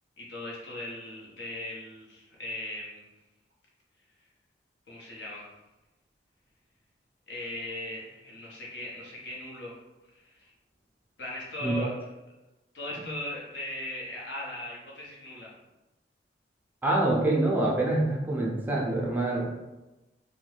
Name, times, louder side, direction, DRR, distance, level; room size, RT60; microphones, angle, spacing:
voice 1, 0.2-3.1 4.9-5.5 7.3-9.8 10.1-10.5 11.2-11.9 12.7-15.5, left 1 dB, 70° left, -4 dB, 0.8 m, -38 dB
voice 2, 16.8-19.5, right 2 dB, 10° right, -3 dB, 0.4 m, -26 dB
2.6 x 2.1 x 3.2 m, 1.0 s
head